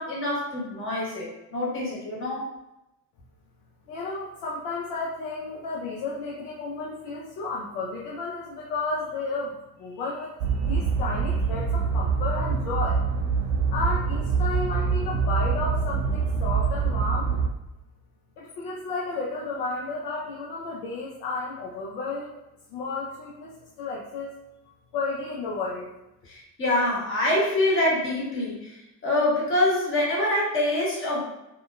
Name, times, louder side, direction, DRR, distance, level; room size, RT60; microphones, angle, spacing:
voice 1, 0.0-2.4 26.2-31.2, left 1 dB, 25° left, -5 dB, 1.1 m, -25 dB
voice 2, 3.9-13.0 13.7-17.4 18.4-22.4 22.7-24.3 24.9-25.9, left 3 dB, 55° left, -4 dB, 0.6 m, -32 dB
sound 1, 10.4-17.5, right 5 dB, 60° right, 0.5 m, -25 dB
2.8 x 2.1 x 2.2 m, 0.92 s
figure-of-eight pair, 60°, 49 cm